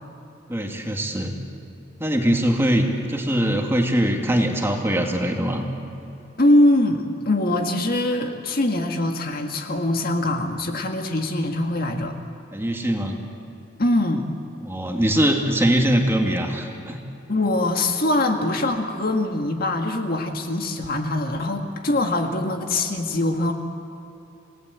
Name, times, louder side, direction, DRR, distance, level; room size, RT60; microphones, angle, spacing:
voice 1, 0.5-1.3 2.0-5.6 12.5-13.2 14.6-17.0, equal, 15° right, 2 dB, 2.2 m, -22 dB
voice 2, 6.4-12.2 13.8-14.3 17.3-23.5, left 1 dB, 50° left, 4 dB, 1.8 m, -22 dB
29.0 x 18.0 x 8.1 m, 2.9 s
head